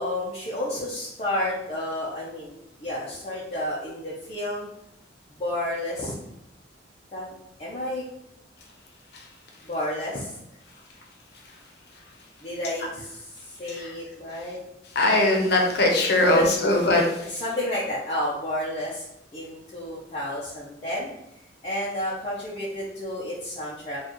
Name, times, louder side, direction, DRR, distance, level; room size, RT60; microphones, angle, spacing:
voice 1, 0.0-2.6 2.8-4.7 5.4-6.2 7.1-7.3 7.6-8.0 9.6-10.4 12.4-14.6 16.3-16.5 17.2-19.0 19.3-21.1 21.6-24.0, left 1 dB, 35° left, -7 dB, 0.7 m, -31 dB
voice 2, 14.9-17.1, left 2 dB, 60° left, 1 dB, 0.9 m, -20 dB
4.5 x 2.4 x 3.0 m, 0.81 s
head